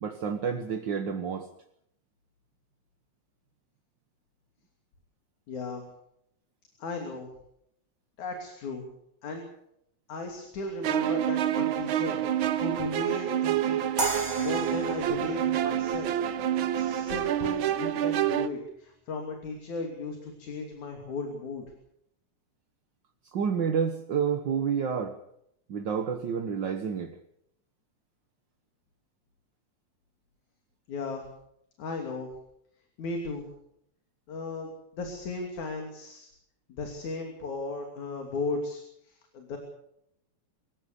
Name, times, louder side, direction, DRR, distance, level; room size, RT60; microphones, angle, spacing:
voice 1, 0.0-1.5 23.3-25.2 25.7-27.2, right 7 dB, 50° right, 6 dB, 1.4 m, -29 dB
voice 2, 5.5-5.8 6.8-7.3 8.2-8.9 9.2-9.5 10.1-13.9 14.4-16.1 16.7-21.7 30.9-31.2 31.8-32.3 33.0-33.4 34.3-36.3 36.7-39.6, left 3 dB, 75° left, 3 dB, 4.3 m, -36 dB
sound 1, 10.8-18.5, right 11 dB, 70° right, 1.2 m, -28 dB
sound 2, 14.0-17.0, right 2 dB, 15° right, 1.7 m, -35 dB
25.5 x 15.5 x 6.9 m, 0.75 s
omnidirectional pair, 3.4 m